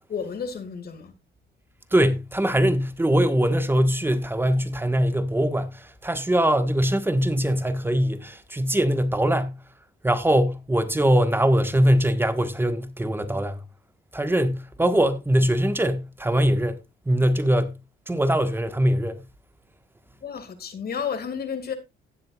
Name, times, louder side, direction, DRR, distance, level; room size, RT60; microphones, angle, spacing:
voice 1, 0.1-1.1 20.2-21.8, left 6 dB, 50° left, 2.2 m, -31 dB
voice 2, 1.9-9.6 10.0-13.6 14.1-16.8 17.0-17.8 18.1-19.2, right 1 dB, 10° right, 1.4 m, -22 dB
16.5 x 7.7 x 2.4 m
cardioid pair, 90°, 20 cm